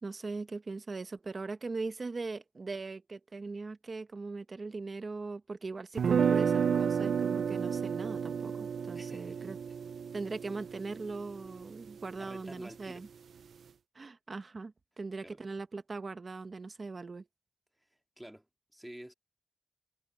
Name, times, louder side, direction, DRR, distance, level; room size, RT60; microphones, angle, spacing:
voice 1, 0.0-9.6 10.1-13.1 13.9-17.3, right 3 dB, 35° right, 1.1 m, -40 dB
sound 1, 6.0-11.9, right 7 dB, 75° right, 0.4 m, -31 dB
voice 2, 8.9-9.6 12.2-13.0 15.2-15.5 18.2-18.5 18.7-19.1, right 1 dB, 5° right, 2.1 m, -49 dB
wide cardioid pair, 145°, 0 cm